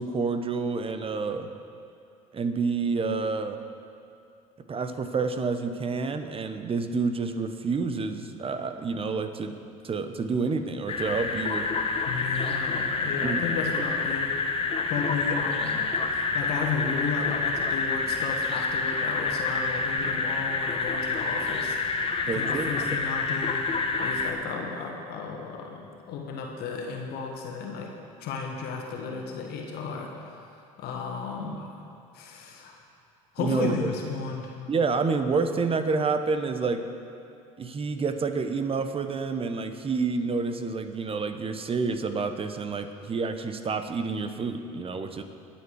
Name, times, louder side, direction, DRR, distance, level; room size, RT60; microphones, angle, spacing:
voice 1, 0.0-1.5 2.3-3.6 4.7-9.6 9.8-11.7 13.2-13.5 22.3-23.1 33.4-33.9 34.7-36.8 37.6-45.2, right 4 dB, 30° right, 8 dB, 1.1 m, -28 dB
sound 1, 10.9-24.3, left 4 dB, 30° left, 1.2 m, -28 dB
voice 2, 12.1-14.4 14.9-23.7 24.0-27.9 28.2-30.4 30.8-31.7 32.1-32.8 33.3-34.5, left 5 dB, 60° left, 1 dB, 1.6 m, -34 dB
21.0 x 7.4 x 4.8 m, 2.5 s
hypercardioid pair, 70°, 18 cm